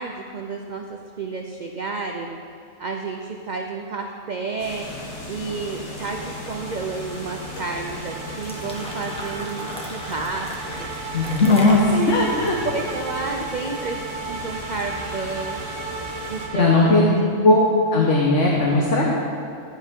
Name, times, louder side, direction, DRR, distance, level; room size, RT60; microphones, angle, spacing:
voice 1, 0.0-2.3 2.8-10.5 10.7-11.2 11.9-12.4 12.6-14.0 14.3-15.6 16.3-17.1, right 4 dB, 45° right, 2 dB, 0.7 m, -31 dB
sound 1, 4.6-16.5, left 1 dB, 85° left, 2.9 m, -36 dB
sound 2, 6.0-17.3, right 5 dB, 75° right, 1.3 m, -36 dB
sound 3, 8.4-13.5, equal, 5° left, 1.3 m, -37 dB
voice 2, 11.1-12.5 16.5-17.1 17.4-17.6 17.9-19.1, left 2 dB, 65° left, -3 dB, 1.6 m, -17 dB
14.5 x 11.5 x 3.7 m, 2.3 s
omnidirectional pair, 1.3 m